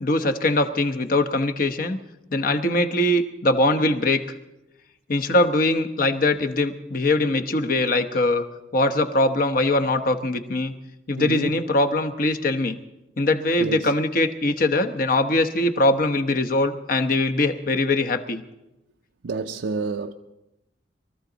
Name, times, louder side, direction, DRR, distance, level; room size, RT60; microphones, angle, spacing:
voice 1, 0.0-2.0 2.3-4.2 5.1-8.4 8.7-10.7 11.1-12.8 13.2-18.4, left 2 dB, 50° left, 0.9 m, -22 dB
voice 2, 11.2-11.6 13.6-13.9 19.2-20.1, right 4 dB, 80° right, 0.5 m, -29 dB
23.0 x 13.5 x 3.9 m
head